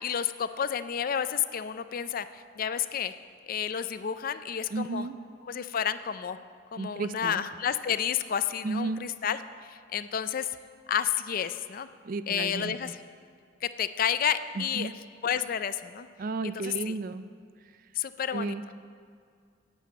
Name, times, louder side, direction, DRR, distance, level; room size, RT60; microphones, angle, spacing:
voice 1, 0.0-3.1 3.5-5.1 5.5-6.4 6.7-10.5 10.9-11.9 12.3-13.0 13.6-14.9 15.2-16.1 16.4-17.0 17.9-18.5, left 8 dB, 45° left, 12 dB, 0.4 m, -30 dB
voice 2, 4.7-5.2 6.8-7.4 8.6-9.0 12.0-12.8 14.6-14.9 16.2-17.2 18.3-18.7, right 3 dB, 45° right, 12 dB, 0.4 m, -33 dB
8.9 x 7.7 x 8.4 m, 2.2 s
head